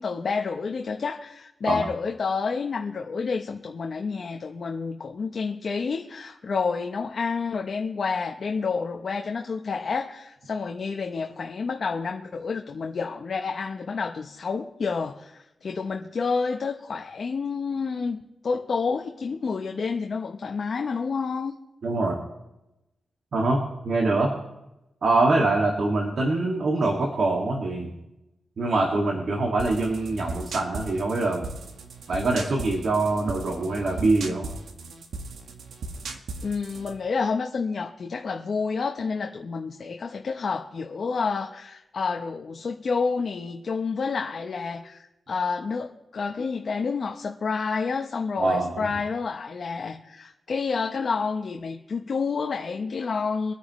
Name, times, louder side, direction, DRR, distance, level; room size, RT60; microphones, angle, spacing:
voice 1, 0.0-21.5 36.4-53.5, left 5 dB, 55° left, 3 dB, 0.9 m, -29 dB
voice 2, 21.8-22.2 23.3-24.3 25.0-27.9 28.6-31.5 32.1-34.5 48.4-48.8, right 2 dB, 60° right, 0 dB, 2.1 m, -24 dB
sound 1, 29.6-37.0, right 3 dB, 85° right, 1.3 m, -37 dB
24.0 x 9.4 x 3.2 m, 0.93 s
cardioid pair, 90°, 0 cm